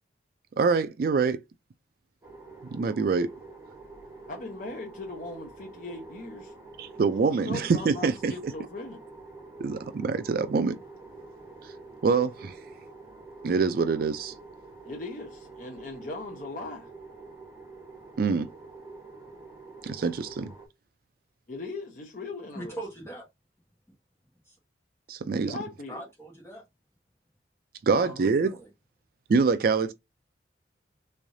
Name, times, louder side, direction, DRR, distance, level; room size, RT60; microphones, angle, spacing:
voice 1, 0.6-1.4 2.7-3.3 6.8-8.5 9.6-10.8 11.6-11.7 12.0-12.6 13.4-14.3 18.2-18.5 19.8-20.5 25.1-25.5 27.8-28.5 29.3-29.9, right 4 dB, 55° right, 0.3 m, -25 dB
sound 1, 2.2-20.7, right 3 dB, 15° right, 1.5 m, -47 dB
voice 2, 4.3-6.6 7.3-9.0 14.9-16.9 21.5-22.8 25.4-26.0 27.9-28.3, left 2 dB, 45° left, 0.7 m, -39 dB
voice 3, 22.5-23.3 24.5-24.6 25.9-26.6 28.4-28.7, right 1 dB, 15° left, 1.5 m, -40 dB
3.5 x 3.2 x 2.6 m
head